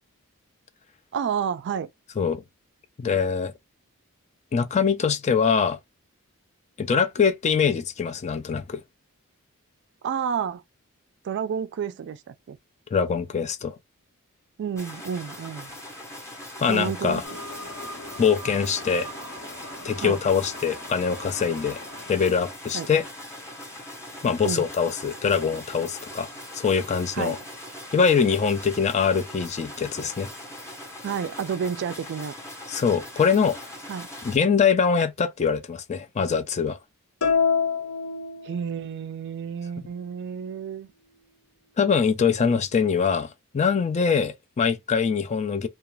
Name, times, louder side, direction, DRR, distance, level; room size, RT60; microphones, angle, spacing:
voice 1, 1.1-1.9 10.0-10.6 11.2-12.6 14.6-15.7 16.7-17.2 20.0-20.2 22.7-22.9 24.4-24.7 27.1-27.4 31.0-32.3 33.9-34.1 38.4-40.9, right 7 dB, 55° right, 0.3 m, -30 dB
voice 2, 3.0-3.5 4.5-5.8 6.8-8.8 12.9-13.8 16.6-17.2 18.2-19.1 19.8-21.8 22.1-23.0 24.2-26.3 26.5-27.4 27.9-30.3 32.7-33.6 34.2-36.8 41.8-45.7, left 6 dB, 30° left, 0.3 m, -23 dB
sound 1, 14.8-34.4, left 1 dB, 10° left, 0.7 m, -41 dB
sound 2, 17.2-22.7, equal, 60° left, 1.1 m, -41 dB
sound 3, 37.2-39.0, left 6 dB, 85° left, 0.7 m, -25 dB
2.4 x 2.3 x 3.0 m
head